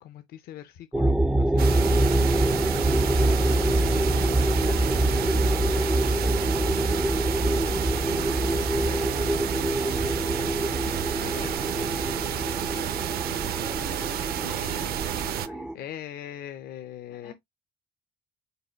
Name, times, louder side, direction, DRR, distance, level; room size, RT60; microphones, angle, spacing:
voice 1, 0.0-2.1 3.5-5.7 7.9-8.3 11.2-11.6 15.7-17.3, left 11 dB, 65° left, 0.6 m, -42 dB
sound 1, 0.9-15.7, right 1 dB, 5° right, 0.3 m, -25 dB
sound 2, 1.6-15.5, right 11 dB, 65° right, 0.6 m, -30 dB
voice 2, 8.1-10.0 13.3-15.9 17.1-17.3, left 3 dB, 85° left, 2.5 m, -46 dB
5.4 x 2.2 x 4.3 m
cardioid pair, 110°, 17 cm